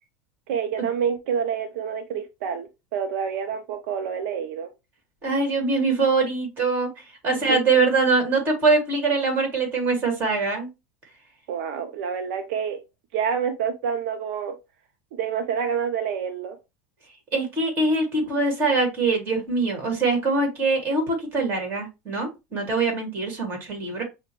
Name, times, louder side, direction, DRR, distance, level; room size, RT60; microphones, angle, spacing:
voice 1, 0.5-4.7 7.5-7.6 11.5-12.8 13.1-14.6 15.1-16.6, right 7 dB, 70° right, 0.5 m, -28 dB
voice 2, 5.2-6.9 7.2-10.7 17.3-24.0, right 3 dB, 30° right, 1.8 m, -23 dB
5.8 x 2.1 x 3.0 m
supercardioid pair, 155°, 7 cm